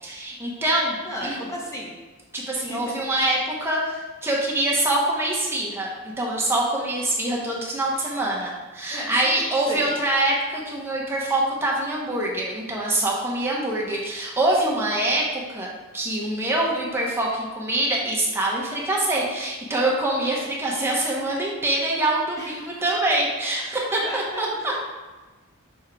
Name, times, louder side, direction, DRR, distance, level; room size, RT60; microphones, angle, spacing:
voice 1, 0.0-1.5 2.3-15.7 15.9-24.7, right 1 dB, 10° right, -4 dB, 1.0 m, -25 dB
voice 2, 1.0-1.9 2.5-2.8 8.9-9.3 9.7-10.0 22.4-22.8 24.0-24.8, equal, 15° left, -3 dB, 0.9 m, -35 dB
6.4 x 3.6 x 4.6 m, 1.2 s
head